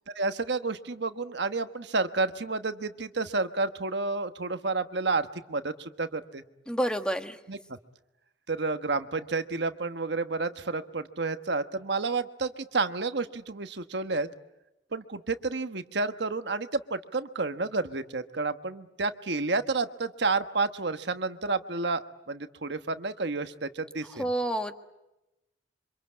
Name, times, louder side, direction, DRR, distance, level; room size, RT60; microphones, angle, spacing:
voice 1, 0.1-6.4 7.5-7.8 8.5-14.3 14.9-24.2, right 3 dB, 65° right, 9 dB, 1.2 m, -30 dB
voice 2, 6.7-7.4 24.2-24.8, right 1 dB, 5° left, 7 dB, 1.5 m, -28 dB
27.5 x 25.5 x 8.6 m, 0.92 s
head